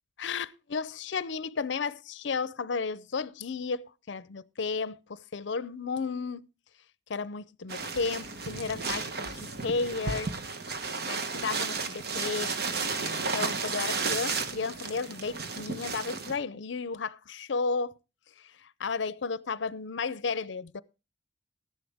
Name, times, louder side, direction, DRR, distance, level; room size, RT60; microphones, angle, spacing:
voice 1, 0.2-6.5 7.1-10.3 11.1-12.5 13.0-18.0 18.4-20.8, left 4 dB, 70° left, 0.6 m, -33 dB
sound 1, 7.7-16.3, right 4 dB, 55° right, 1.2 m, -33 dB
13.5 x 11.0 x 3.5 m
head